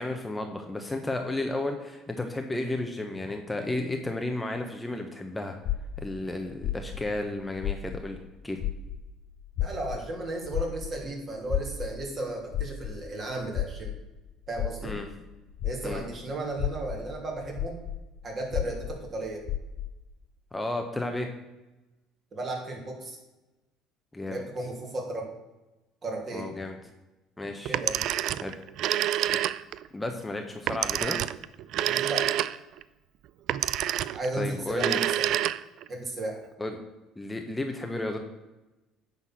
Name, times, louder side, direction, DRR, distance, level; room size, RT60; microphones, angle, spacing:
voice 1, 0.0-5.6 6.0-8.6 14.8-15.1 15.8-16.0 20.5-21.3 24.1-24.4 26.3-26.8 27.4-27.8 28.3-28.6 29.3-29.4 29.9-31.2 34.4-35.0 36.6-36.8 37.2-38.2, left 2 dB, 15° left, 4 dB, 1.0 m, -33 dB
sound 1, 5.6-8.3 8.6-16.1 16.5-20.0, left 11 dB, 65° left, 0.4 m, -33 dB
voice 2, 9.6-13.9 14.5-14.9 15.6-17.8 18.2-19.4 22.3-23.2 24.2-25.3 26.0-26.5 27.7-28.1 31.7-32.3 34.1-35.3 35.9-36.4, right 2 dB, 40° right, 0 dB, 3.0 m, -34 dB
Telephone, 27.7-29.9 30.7-32.8 33.5-34.3 34.7-35.9, right 12 dB, 65° right, 0.3 m, -27 dB
9.8 x 4.1 x 6.2 m, 1.0 s
supercardioid pair, 80°, 0 cm